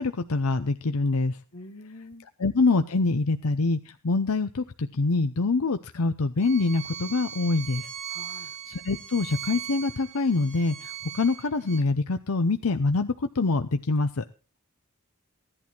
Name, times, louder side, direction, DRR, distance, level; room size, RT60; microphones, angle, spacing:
voice 1, 0.0-1.4 2.4-7.9 8.7-14.2, left 3 dB, 85° left, 0.7 m, -25 dB
voice 2, 1.5-2.3 8.1-8.5, left 2 dB, 60° left, 1.7 m, -45 dB
Bowed string instrument, 6.4-11.8, right 10 dB, 35° right, 1.5 m, -39 dB
16.5 x 11.0 x 4.5 m
head